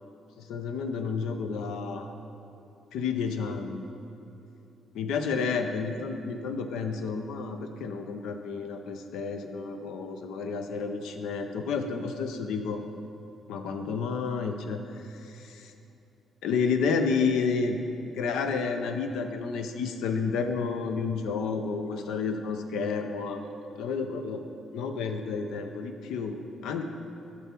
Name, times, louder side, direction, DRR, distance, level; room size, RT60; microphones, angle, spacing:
voice 1, 0.4-2.1 2.9-3.9 4.9-12.8 13.5-14.8 16.4-17.8 18.1-23.5 23.8-24.4 24.7-26.8, left 5 dB, 85° left, 6 dB, 0.5 m, -30 dB
6.8 x 6.0 x 4.4 m, 2.9 s
cardioid pair, 90°, 0 cm